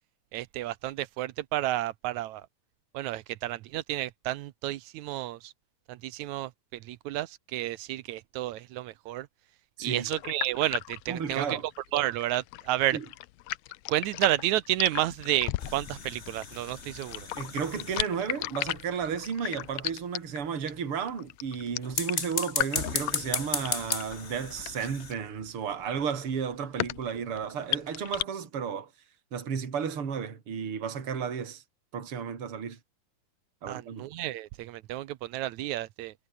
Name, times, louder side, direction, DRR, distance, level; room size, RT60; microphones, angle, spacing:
voice 1, 0.3-2.4 2.9-5.5 5.9-9.3 9.8-11.6 11.9-13.0 13.9-17.3 33.7-36.1, right 15 dB, 75° right, 1.9 m, -31 dB
voice 2, 9.8-10.1 11.1-11.7 12.9-13.1 17.4-28.9 29.3-31.6 31.9-32.8 33.6-34.1, right 7 dB, 40° right, 3.7 m, -33 dB
sound 1, 10.1-28.2, left 17 dB, 90° left, 1.5 m, -36 dB
sound 2, 15.6-18.4 21.8-25.1, left 5 dB, 30° left, 1.3 m, -35 dB
omnidirectional pair, 3.9 m